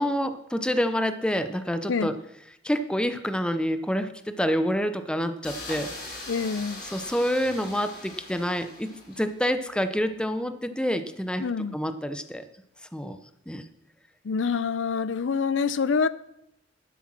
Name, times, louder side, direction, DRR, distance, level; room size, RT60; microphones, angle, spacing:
voice 1, 0.0-2.1 2.6-5.9 6.9-11.5 11.7-12.4 12.9-13.2 13.5-13.6, equal, 5° left, 0.7 m, -27 dB
sound 1, 5.4-9.5, left 2 dB, 55° left, 4.8 m, -41 dB
voice 2, 6.3-6.8 11.4-11.8 14.2-16.1, left 5 dB, 85° left, 0.5 m, -26 dB
11.5 x 8.0 x 6.1 m
head